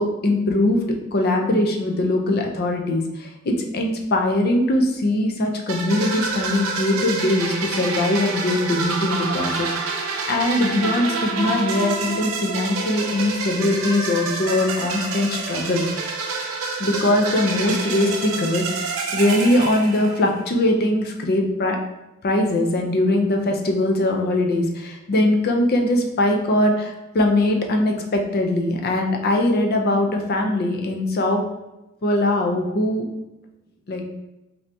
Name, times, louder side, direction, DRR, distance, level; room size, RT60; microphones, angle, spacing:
voice 1, 0.0-9.7 9.9-15.8 16.8-21.8 22.2-31.4 32.0-33.0 33.9-34.0, left 1 dB, 50° left, 2 dB, 0.5 m, -21 dB
sound 1, 5.7-20.5, right 4 dB, 80° right, 0.5 m, -28 dB
3.3 x 2.7 x 2.6 m, 0.99 s
head